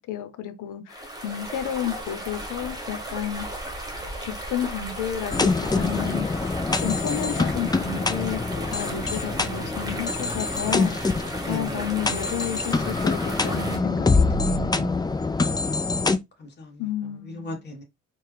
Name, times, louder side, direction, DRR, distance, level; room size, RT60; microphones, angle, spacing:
voice 1, 0.1-3.5 4.5-6.3 6.8-8.4 8.7-11.1 11.5-15.0 16.8-17.6, left 9 dB, 85° left, 0.8 m, -31 dB
sound 1, 0.9-13.8, right 1 dB, 10° right, 1.2 m, -35 dB
sound 2, 5.3-16.2, left 3 dB, 15° left, 0.4 m, -25 dB
voice 2, 11.4-11.9 16.4-16.8 17.3-17.8, left 2 dB, 35° left, 1.6 m, -37 dB
4.3 x 2.3 x 3.4 m
cardioid pair, 90°, 30 cm